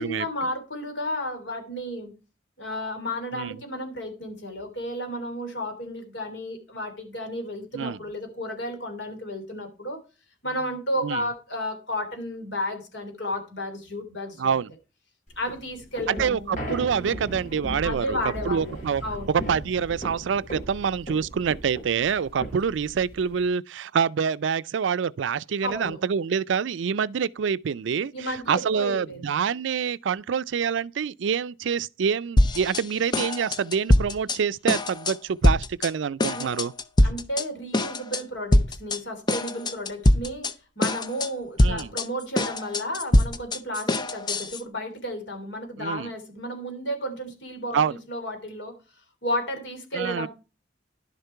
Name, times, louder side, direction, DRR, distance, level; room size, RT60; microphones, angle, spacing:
voice 1, 0.0-2.1 2.6-10.0 10.4-14.5 15.4-16.5 17.8-18.8 19.0-19.3 25.6-26.0 28.1-29.3 36.3-36.5 37.0-40.5 40.8-48.7 49.2-50.3, equal, 70° left, 3.3 m, -32 dB
voice 2, 14.4-14.7 16.1-18.2 18.4-19.0 19.3-36.7 41.6-41.9 45.8-46.1 47.7-48.0 49.9-50.3, right 6 dB, 80° right, 0.4 m, -26 dB
sound 1, 15.3-23.5, right 1 dB, 40° left, 5.5 m, -37 dB
sound 2, 32.4-32.8 33.1-34.4 34.7-35.2 35.4-35.9 36.2-37.4 37.7-38.2 38.5-39.0 39.3-40.5 40.8-41.3 41.6-44.6, left 1 dB, 25° left, 0.6 m, -22 dB
11.5 x 6.6 x 4.6 m
head